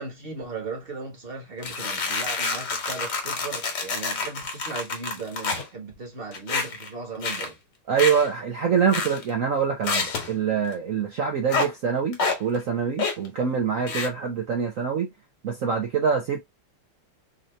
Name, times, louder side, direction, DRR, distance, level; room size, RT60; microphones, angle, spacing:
voice 1, 0.0-7.6, right 3 dB, 30° right, 1.3 m, -37 dB
sound 1, 1.6-5.7 6.3-6.9 7.2-7.5 8.0-8.3 8.9-9.3 9.8-10.3 11.5-11.7 12.1-12.4 13.0-13.3 13.9-14.1, left 4 dB, 60° left, 1.7 m, -28 dB
voice 2, 7.9-15.1 15.4-16.4, right 6 dB, 70° right, 0.7 m, -25 dB
4.0 x 2.8 x 3.1 m
omnidirectional pair, 2.3 m